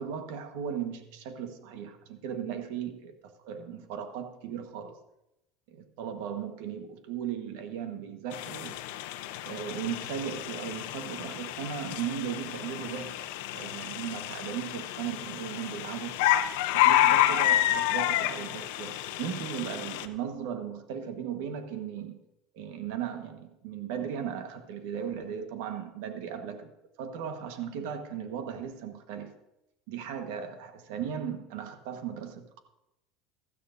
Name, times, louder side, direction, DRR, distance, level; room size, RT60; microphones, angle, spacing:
voice 1, 0.0-5.0 5.7-8.8 9.4-13.3 13.5-16.2 16.7-22.2 22.5-26.7 27.0-29.3 29.9-32.6, right 8 dB, 80° right, 7 dB, 1.3 m, -37 dB
sound 1, 8.3-20.1, left 13 dB, 80° left, 0.7 m, -29 dB
16.0 x 13.0 x 2.6 m, 0.90 s
cardioid pair, 140°, 0 cm